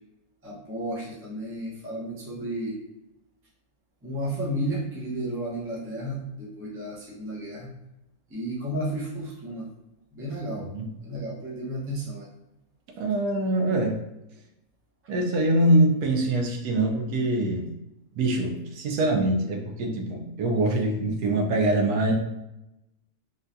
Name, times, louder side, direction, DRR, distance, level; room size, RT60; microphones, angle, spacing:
voice 1, 0.4-2.8 4.0-7.7 8.3-9.7 10.1-10.7 11.0-12.3, right 1 dB, 15° right, -5 dB, 0.6 m, -32 dB
voice 2, 13.0-14.0 15.1-17.7 18.2-22.1, right 1 dB, 85° right, 2 dB, 1.2 m, -24 dB
3.8 x 2.2 x 2.6 m, 0.90 s
omnidirectional pair, 1.6 m